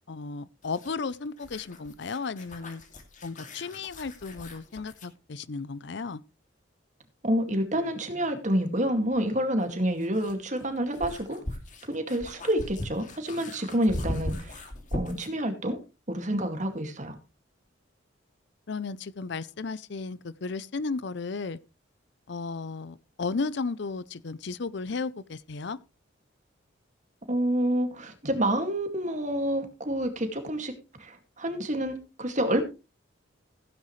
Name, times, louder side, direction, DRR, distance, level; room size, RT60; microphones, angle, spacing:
voice 1, 0.1-2.8 3.2-6.2 18.7-21.6 22.3-25.8, left 4 dB, 60° left, 0.6 m, -34 dB
sound 1, 0.6-5.2 7.5-7.6 9.6-15.4, left 1 dB, 40° left, 2.6 m, -39 dB
voice 2, 7.2-11.4 11.9-14.6 14.9-15.8 16.1-17.2 27.3-30.7 31.0-32.6, right 1 dB, 40° right, 2.2 m, -28 dB
16.0 x 9.8 x 3.2 m
head